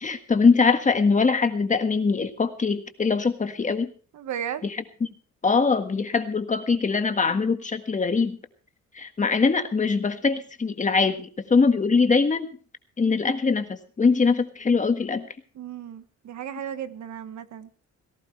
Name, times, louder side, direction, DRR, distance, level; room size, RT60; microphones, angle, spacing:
voice 1, 0.0-3.9 4.6-5.1 5.4-8.4 8.9-12.5 13.0-15.3, left 4 dB, 25° left, 8 dB, 1.6 m, -22 dB
voice 2, 4.1-4.7 15.5-17.7, right 9 dB, 70° right, 11 dB, 1.4 m, -35 dB
18.5 x 17.0 x 3.2 m, 0.38 s
cardioid pair, 150°, 29 cm